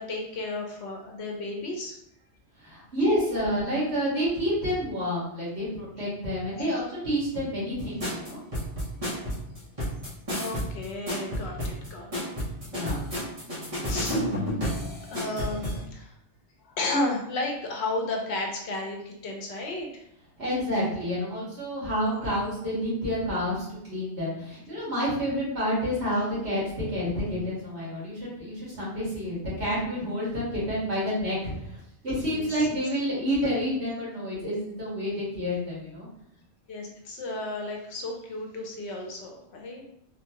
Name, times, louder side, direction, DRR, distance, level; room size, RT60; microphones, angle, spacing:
voice 1, 0.0-2.0 6.5-6.6 10.4-12.3 13.9-14.3 14.9-16.1 16.6-20.0 32.3-32.5 36.7-39.8, left 2 dB, 75° left, 1 dB, 1.0 m, -33 dB
voice 2, 2.6-8.4 12.7-13.0 20.4-36.1, equal, 70° right, -7 dB, 1.8 m, -29 dB
sound 1, 8.0-15.8, equal, 35° right, 1.0 m, -31 dB
3.7 x 2.3 x 2.8 m, 0.74 s
omnidirectional pair, 1.2 m